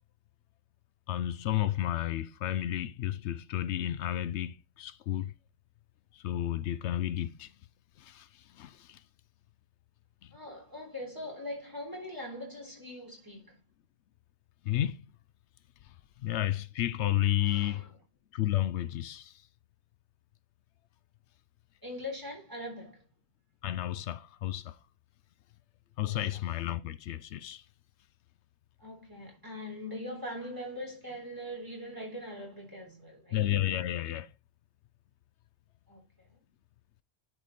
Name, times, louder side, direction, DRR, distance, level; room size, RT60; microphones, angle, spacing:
voice 1, 1.1-5.3 6.1-7.5 8.0-8.3 8.5-9.0 14.6-15.0 16.2-17.9 18.3-19.3 23.6-24.8 26.0-27.6 33.3-34.3, left 12 dB, 85° left, 0.9 m, -31 dB
voice 2, 10.3-13.6 17.4-18.0 21.8-23.0 26.0-26.4 28.8-33.4 35.9-36.0, left 1 dB, 20° right, 3.6 m, -42 dB
11.0 x 4.6 x 4.1 m
omnidirectional pair, 1.1 m